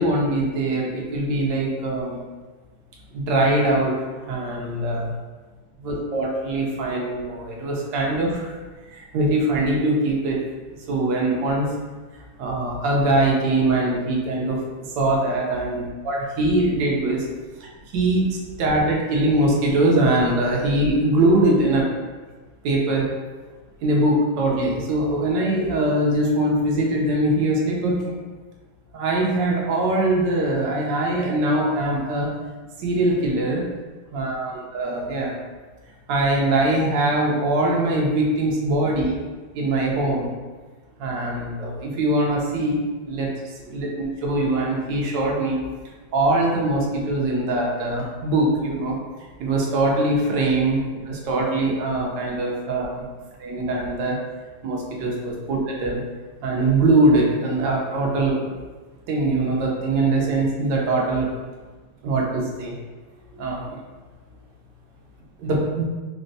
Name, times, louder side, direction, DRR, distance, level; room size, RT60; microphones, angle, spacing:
voice 1, 0.0-2.2 3.1-4.0 4.3-5.1 5.8-8.6 8.9-10.4 10.9-11.7 12.1-14.6 15.0-17.3 17.6-21.9 22.6-23.1 23.8-28.2 28.9-32.3 32.8-33.6 34.1-35.4 36.1-39.2 39.5-40.3 41.0-45.6 46.1-49.0 49.4-53.0 53.4-54.2 54.6-56.0 56.4-58.5 59.1-61.3 62.0-62.7 63.3-63.8 65.4-65.8, right 2 dB, 85° right, -2 dB, 1.3 m, -22 dB
4.0 x 2.1 x 2.6 m, 1.3 s
omnidirectional pair, 2.0 m